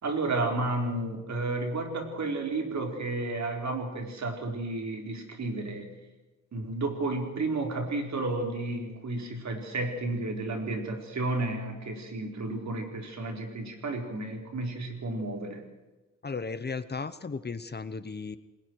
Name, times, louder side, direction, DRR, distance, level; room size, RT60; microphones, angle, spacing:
voice 1, 0.0-5.9 6.5-15.6, right 2 dB, 60° right, 3 dB, 4.3 m, -32 dB
voice 2, 16.2-18.4, left 4 dB, 35° left, 13 dB, 0.9 m, -35 dB
28.5 x 20.5 x 4.7 m, 1.1 s
wide cardioid pair, 135°, 31 cm